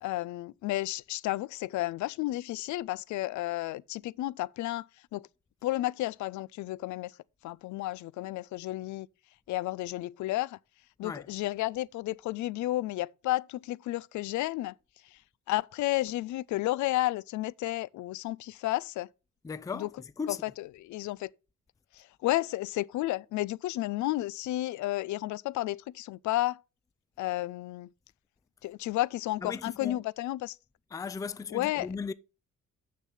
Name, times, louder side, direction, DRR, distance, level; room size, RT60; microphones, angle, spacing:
voice 1, 0.0-4.9 5.1-5.3 5.6-7.1 7.4-9.1 9.5-10.6 11.0-14.7 15.1-15.2 15.5-19.1 19.8-19.9 20.3-20.4 20.8-21.3 21.9-26.6 27.2-27.9 28.6-30.6 31.5-31.9, left 16 dB, 75° left, 0.4 m, -32 dB
voice 2, 19.4-20.4 29.4-30.0 30.9-32.1, left 5 dB, 10° left, 0.4 m, -37 dB
6.7 x 6.6 x 5.6 m
cardioid pair, 90°, 30 cm